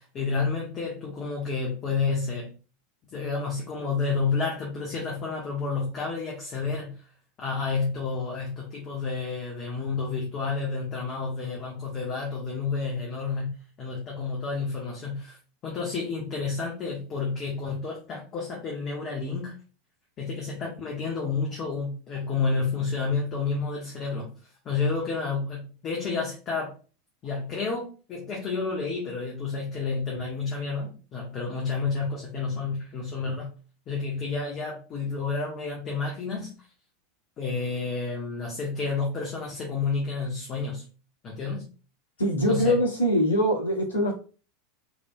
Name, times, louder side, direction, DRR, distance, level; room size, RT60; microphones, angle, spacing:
voice 1, 0.0-2.5 3.1-6.9 7.4-13.5 13.8-15.4 15.6-19.5 20.2-24.3 24.6-26.7 27.2-33.5 33.9-36.5 37.4-40.8 41.2-41.6 42.5-42.8, left 4 dB, 35° left, -3 dB, 1.3 m, -30 dB
voice 2, 42.2-44.2, equal, 75° left, -2 dB, 1.7 m, -23 dB
4.8 x 3.2 x 2.3 m, 0.36 s
figure-of-eight pair, 85°, 0 cm